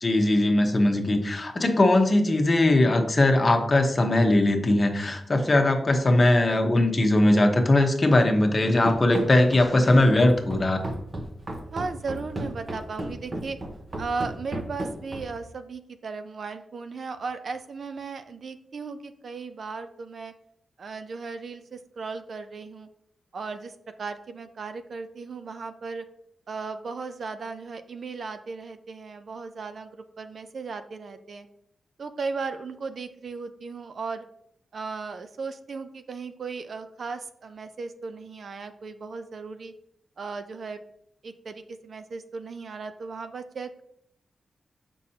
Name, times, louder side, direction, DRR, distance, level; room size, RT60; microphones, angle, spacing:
voice 1, 0.0-10.8, left 1 dB, 30° left, 4 dB, 0.9 m, -20 dB
Run, 8.9-15.5, right 1 dB, 35° right, 0.9 m, -34 dB
voice 2, 11.7-13.6 14.0-20.3 20.8-22.9 23.3-26.0 26.5-31.5 32.0-34.3 34.7-39.7 40.2-40.8 41.2-43.8, right 4 dB, 60° right, 9 dB, 0.5 m, -36 dB
7.0 x 5.4 x 2.8 m, 0.73 s
wide cardioid pair, 115°, 0 cm